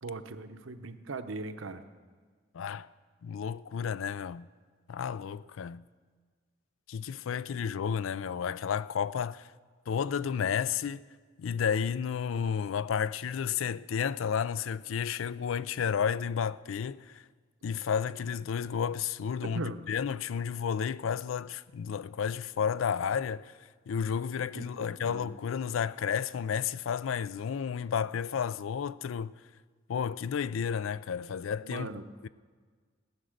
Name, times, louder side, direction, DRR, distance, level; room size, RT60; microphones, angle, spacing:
voice 1, 0.0-1.8 19.4-19.8 24.5-24.6 25.1-25.3 31.6-32.0, right 3 dB, 85° right, 0.8 m, -39 dB
voice 2, 2.5-2.9 3.2-4.5 4.9-5.9 6.9-9.5 9.9-11.0 11.4-17.2 17.6-29.3 29.9-31.9 32.2-32.3, left 7 dB, 85° left, 0.4 m, -32 dB
15.5 x 9.6 x 6.5 m
head